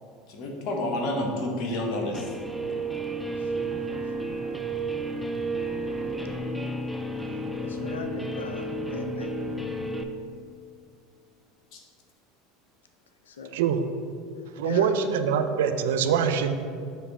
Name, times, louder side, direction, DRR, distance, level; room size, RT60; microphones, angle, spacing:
voice 1, 0.3-2.2 11.7-11.8, left 1 dB, 55° left, 1 dB, 1.2 m, -29 dB
Guitar, 2.1-10.0, right 2 dB, ahead, 0.5 m, -32 dB
voice 2, 6.2-6.6 7.3-9.3 13.2-13.5 14.6-15.0, left 4 dB, 85° left, 6 dB, 0.5 m, -39 dB
voice 3, 13.5-13.8 14.6-16.5, right 7 dB, 75° right, 8 dB, 0.4 m, -24 dB
7.3 x 3.2 x 5.4 m, 2.3 s
hypercardioid pair, 85°, 0 cm